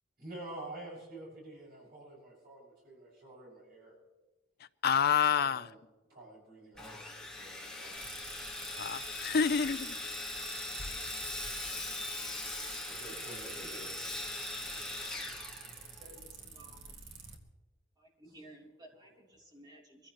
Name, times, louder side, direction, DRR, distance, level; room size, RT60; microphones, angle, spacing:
voice 1, 0.2-3.9 5.4-5.8 6.1-8.0 12.9-14.2 15.9-16.0, right 2 dB, 50° right, 6.5 m, -49 dB
voice 2, 4.8-5.7 8.8-10.0, left 6 dB, 50° left, 0.5 m, -28 dB
Sawing, 6.8-16.2, left 2 dB, 5° left, 1.9 m, -41 dB
sound 1, 7.9-17.4, right 5 dB, 80° right, 1.8 m, -48 dB
voice 3, 14.8-15.4 16.0-16.9 18.0-20.1, right 1 dB, 20° right, 3.5 m, -56 dB
23.5 x 15.5 x 3.1 m
head